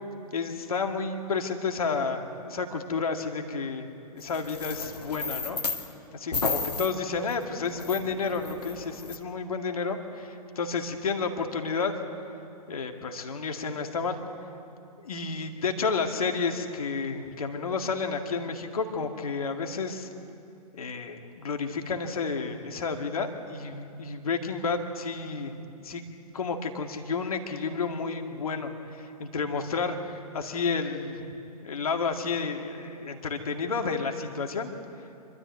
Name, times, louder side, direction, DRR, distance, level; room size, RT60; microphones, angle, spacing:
voice 1, 0.3-5.6 6.1-11.9 12.7-14.2 15.0-20.1 20.8-25.5 25.8-26.0 26.3-31.3 31.6-34.7, left 4 dB, 65° left, 4 dB, 2.1 m, -31 dB
sound 1, 4.2-5.9 6.3-9.2, left 3 dB, 80° left, 1.7 m, -33 dB
26.5 x 13.0 x 9.5 m, 2.7 s
figure-of-eight pair, 120°, 20 cm